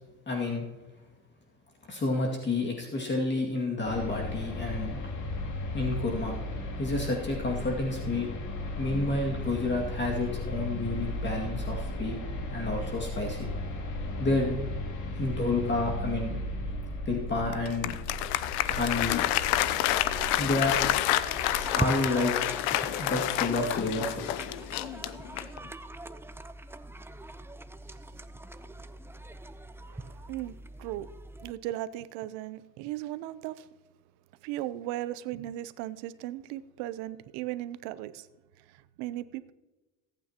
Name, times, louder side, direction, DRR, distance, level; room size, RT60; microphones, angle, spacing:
voice 1, 0.3-0.6 1.9-5.1 5.7-6.4 6.8-8.3 8.8-12.2 12.5-13.4 14.2-14.6 15.2-16.4 17.1-18.0 18.7-19.3 20.4-20.8 21.8-22.3 23.0-24.3, left 2 dB, 30° left, 2.2 m, -30 dB
sound 1, 3.8-21.8, left 2 dB, 50° left, 2.3 m, -36 dB
Applause, 17.5-25.7, left 14 dB, 80° left, 0.7 m, -29 dB
sound 2, 18.6-31.5, right 2 dB, 5° right, 0.6 m, -41 dB
voice 2, 29.9-30.5 30.8-31.1 31.4-33.6 34.4-38.2 39.0-39.5, right 14 dB, 80° right, 0.7 m, -37 dB
20.5 x 9.1 x 2.9 m
supercardioid pair, 100°, 39 cm